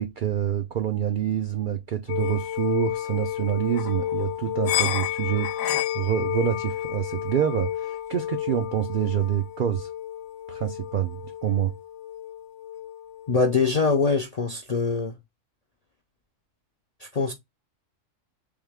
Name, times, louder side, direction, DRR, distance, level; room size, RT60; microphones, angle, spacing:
voice 1, 0.0-9.9 10.5-11.7, right 10 dB, 70° right, 0.4 m, -27 dB
sound 1, 2.1-13.8, left 12 dB, 80° left, 1.1 m, -31 dB
voice 2, 13.3-15.2 17.0-17.3, left 4 dB, 55° left, 0.4 m, -23 dB
3.6 x 3.1 x 3.4 m
omnidirectional pair, 1.4 m